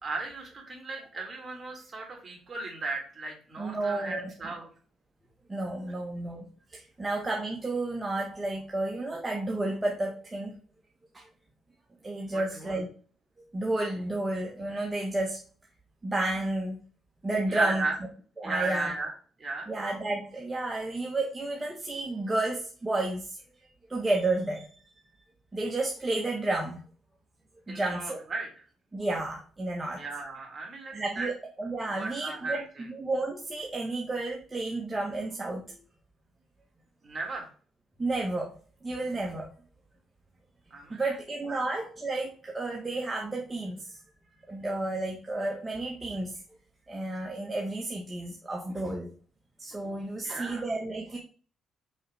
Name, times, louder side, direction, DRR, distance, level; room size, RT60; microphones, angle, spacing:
voice 1, 0.0-4.7 12.3-12.8 17.5-18.0 18.4-19.1 19.4-19.7 27.7-28.5 29.9-31.3 31.9-32.9 37.0-37.5 40.7-41.2 41.5-41.6 50.2-50.6, right 3 dB, 35° right, 0 dB, 2.8 m, -35 dB
voice 2, 3.6-4.3 5.5-6.5 6.7-10.5 11.1-11.2 12.0-12.9 13.5-15.4 16.0-16.8 17.2-17.8 18.4-18.9 19.7-23.4 23.9-24.7 25.5-26.8 27.7-28.2 28.9-30.0 30.9-31.3 31.6-35.8 38.0-38.5 38.8-39.5 40.9-44.0 44.5-46.3 46.9-49.1 49.6-51.2, right 2 dB, 20° right, -1 dB, 1.2 m, -31 dB
5.5 x 5.1 x 3.3 m, 0.41 s
cardioid pair, 90°, 0 cm